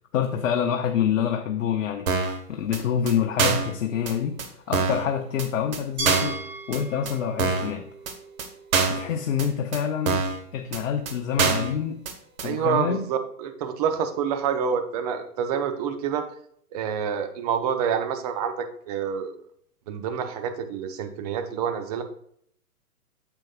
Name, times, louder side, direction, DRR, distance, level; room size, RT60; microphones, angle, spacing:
voice 1, 0.1-7.9 8.9-10.2 10.5-12.0 12.4-13.1, left 8 dB, 55° left, 4 dB, 0.9 m, -27 dB
sound 1, 2.1-2.4 2.7-2.8 3.1-3.2 3.4-3.7 4.1-4.2 4.4-4.5 4.7-5.1 5.4-5.5 5.7-5.8 6.1-6.4 6.7-6.8 7.1-7.2 7.4-7.7 8.1-8.2 8.4-8.5 8.7-9.1 9.4-9.5 9.7-9.8 10.1-10.4 10.7-10.8 11.1-11.2 11.4-11.7 12.1-12.2 12.4-12.5, right 4 dB, 60° right, 1.5 m, -24 dB
Glass, 6.0-8.9, right 3 dB, 40° right, 3.3 m, -37 dB
voice 2, 12.4-16.3 16.7-19.3 19.9-22.0, right 7 dB, 25° right, 8 dB, 0.6 m, -27 dB
9.0 x 7.1 x 2.4 m, 0.66 s
hypercardioid pair, 130°, 47 cm